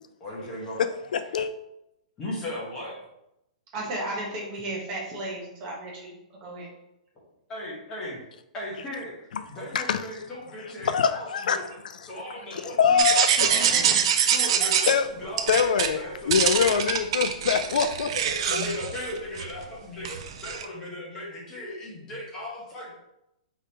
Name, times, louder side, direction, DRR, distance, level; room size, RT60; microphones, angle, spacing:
voice 1, 0.2-0.8 2.2-2.9 7.5-8.2 8.5-11.6 12.0-13.6 14.3-16.8 17.4-17.6 18.1-22.9, left 1 dB, 15° left, -4 dB, 1.1 m, -37 dB
voice 2, 1.1-1.5 9.3-9.4 9.7-10.0 10.8-11.7 12.5-13.3 14.9-15.1 15.5-16.0 16.3-18.1 18.5-18.6, left 7 dB, 80° left, 10 dB, 0.3 m, -24 dB
voice 3, 3.7-6.1 6.4-6.7 13.5-14.0, right 1 dB, 25° right, -3 dB, 1.1 m, -33 dB
sound 1, 13.0-15.0 15.4-15.9 16.3-19.7 20.1-20.7, right 8 dB, 40° right, 0.4 m, -24 dB
4.8 x 3.5 x 2.9 m, 0.84 s
hypercardioid pair, 175°, 4 cm